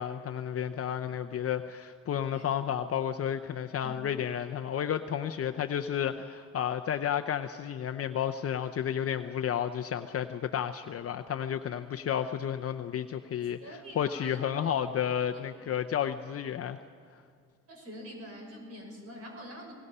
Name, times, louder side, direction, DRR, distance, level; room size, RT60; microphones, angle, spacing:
voice 1, 0.0-16.8, left 9 dB, 50° left, 8 dB, 0.7 m, -32 dB
voice 2, 13.6-14.7 17.7-19.7, equal, 50° right, 1 dB, 6.2 m, -45 dB
30.0 x 19.0 x 5.5 m, 2.2 s
cardioid pair, 90°, 30 cm